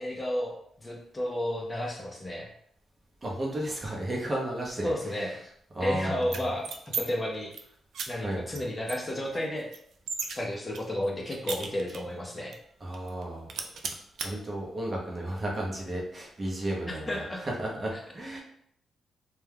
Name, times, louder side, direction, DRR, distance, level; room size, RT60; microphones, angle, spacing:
voice 1, 0.0-2.5 4.8-5.4 5.8-7.5 8.1-9.7 10.3-12.5 16.9-17.4 17.9-18.0, left 1 dB, 20° left, -1 dB, 0.5 m, -32 dB
voice 2, 3.2-4.9 5.7-6.2 8.2-8.4 12.8-13.5 14.2-18.4, right 1 dB, 30° right, -2 dB, 0.7 m, -33 dB
sound 1, 6.2-7.0 7.3-7.6 7.9-8.1 8.5-8.6 8.9-10.4 10.7-12.2 12.5-12.6 12.9-13.2 13.5-14.3, right 5 dB, 75° right, 0.3 m, -36 dB
2.3 x 2.2 x 3.3 m, 0.69 s
cardioid pair, 105°, 0 cm